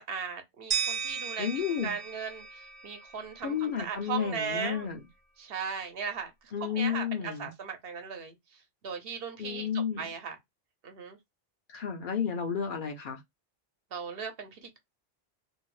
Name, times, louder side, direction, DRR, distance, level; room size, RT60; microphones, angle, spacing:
voice 1, 0.0-1.5 1.8-4.9 5.4-6.3 6.6-10.4 10.8-11.2 13.9-14.8, right 6 dB, 65° right, 0.9 m, -37 dB
sound 1, 0.7-3.6, right 7 dB, 40° right, 0.5 m, -35 dB
voice 2, 1.4-1.9 3.4-5.0 6.5-7.5 9.4-10.1 11.7-13.2, left 7 dB, 60° left, 0.7 m, -32 dB
2.7 x 2.0 x 3.0 m
omnidirectional pair, 1.1 m